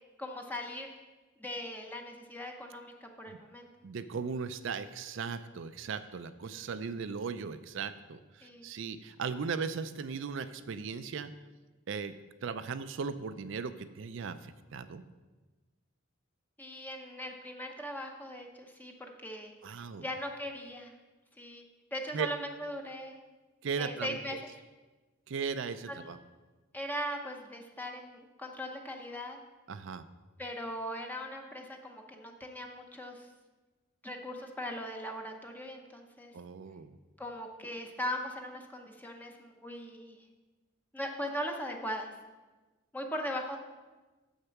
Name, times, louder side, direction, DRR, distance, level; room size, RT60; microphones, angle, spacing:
voice 1, 0.2-0.9 1.4-3.7 6.5-6.6 8.4-8.7 16.6-19.5 20.0-20.9 21.4-21.6 21.9-23.2 23.8-24.4 25.9-26.0 26.7-29.4 30.4-33.3 34.0-36.3 37.2-40.2 40.9-42.1 42.9-43.6, equal, 10° left, 2 dB, 0.7 m, -39 dB
voice 2, 3.8-11.3 11.9-12.1 12.4-15.0 19.6-20.1 22.1-22.3 23.6-24.4 25.3-26.2 29.7-30.0 36.3-37.0, right 5 dB, 65° right, 12 dB, 0.4 m, -37 dB
7.2 x 6.5 x 5.8 m, 1.2 s
head